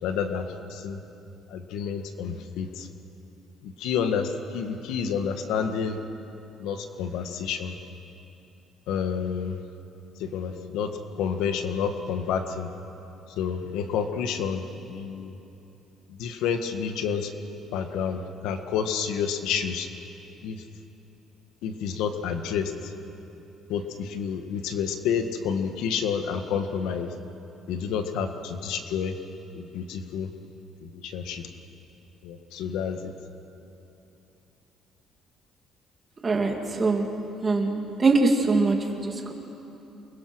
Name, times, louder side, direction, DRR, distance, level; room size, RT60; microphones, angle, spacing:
voice 1, 0.0-1.0 1.5-2.9 3.6-6.0 6.6-7.8 8.9-9.6 10.2-10.9 11.2-12.7 13.4-15.3 16.1-17.3 17.7-19.9 20.4-20.6 21.6-22.9 23.7-27.1 27.7-29.2 29.5-30.3 30.8-31.5 32.2-33.1, left 7 dB, 90° left, 7 dB, 1.6 m, -29 dB
voice 2, 36.2-37.1 37.4-39.3, right 3 dB, 25° right, 2 dB, 2.4 m, -23 dB
28.5 x 22.5 x 6.2 m, 3.0 s
cardioid pair, 140°, 0 cm